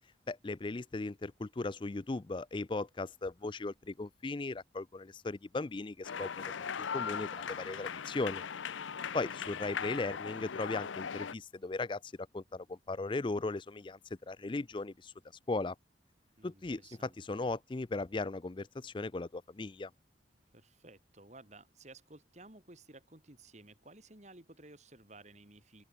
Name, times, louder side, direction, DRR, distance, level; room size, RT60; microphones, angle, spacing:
voice 1, 0.3-8.5 9.1-14.0 14.3-15.1 15.5-15.8 16.4-19.9, left 3 dB, 25° left, 0.4 m, -37 dB
sound 1, 6.0-11.3, left 7 dB, 90° left, 0.7 m, -39 dB
voice 2, 9.0-9.5 16.4-17.2 20.5-25.8, right 2 dB, 40° right, 3.2 m, -56 dB
open air
head